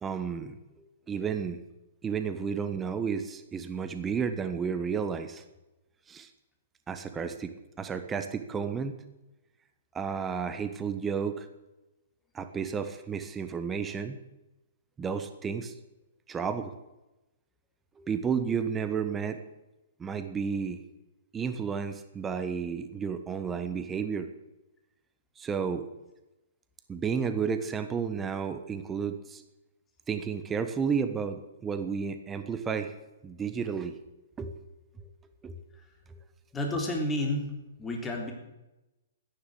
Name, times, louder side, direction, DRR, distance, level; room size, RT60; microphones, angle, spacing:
voice 1, 0.0-1.6 2.0-5.4 6.1-6.3 6.9-9.0 9.9-11.5 12.3-14.2 15.0-15.7 16.3-16.7 18.0-19.4 20.0-20.8 21.3-24.3 25.4-25.9 26.9-29.4 30.1-32.9 33.2-34.0 34.4-34.6 35.0-35.1 35.4-35.6 36.1-36.2, right 6 dB, 15° right, 9 dB, 1.3 m, -32 dB
voice 2, 36.5-37.5 37.8-38.3, left 1 dB, 15° left, 2 dB, 3.5 m, -30 dB
14.0 x 10.0 x 8.0 m, 0.98 s
figure-of-eight pair, 120°, 0 cm